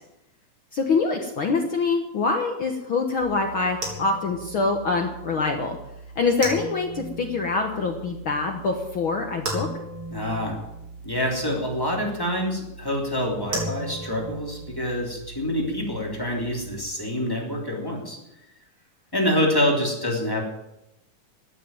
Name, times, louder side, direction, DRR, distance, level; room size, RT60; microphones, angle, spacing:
voice 1, 0.7-5.8 6.1-9.7, left 4 dB, 70° left, 3 dB, 1.2 m, -25 dB
sound 1, 3.2-16.8, right 2 dB, 35° right, 4.4 m, -37 dB
voice 2, 10.1-10.6 11.0-18.2 19.1-20.4, left 1 dB, 5° left, -1 dB, 2.7 m, -26 dB
14.5 x 9.4 x 9.1 m, 0.89 s
omnidirectional pair, 4.3 m